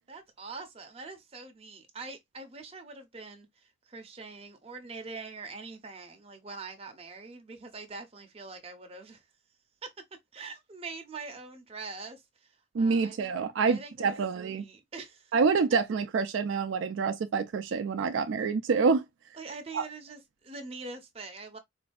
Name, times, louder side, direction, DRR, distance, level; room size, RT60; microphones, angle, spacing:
voice 1, 0.1-9.2 9.8-10.0 10.3-13.4 13.7-15.3 19.4-21.6, right 3 dB, 30° right, 0.7 m, -44 dB
voice 2, 12.7-14.6 15.3-19.0 19.7-19.8, right 5 dB, 70° right, 0.4 m, -27 dB
4.2 x 2.6 x 2.3 m
head